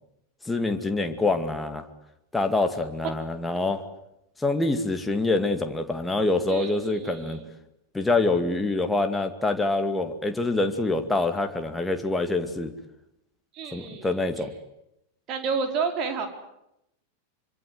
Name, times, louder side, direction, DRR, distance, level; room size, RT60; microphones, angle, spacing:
voice 1, 0.5-1.8 2.3-3.8 4.4-7.4 7.9-12.7 13.7-14.5, left 2 dB, 10° left, 6 dB, 2.4 m, -25 dB
voice 2, 6.5-7.5 13.5-14.4 15.3-16.3, right 5 dB, 35° right, 6 dB, 4.9 m, -31 dB
25.5 x 25.0 x 8.1 m, 0.82 s
figure-of-eight pair, 90°, 0 cm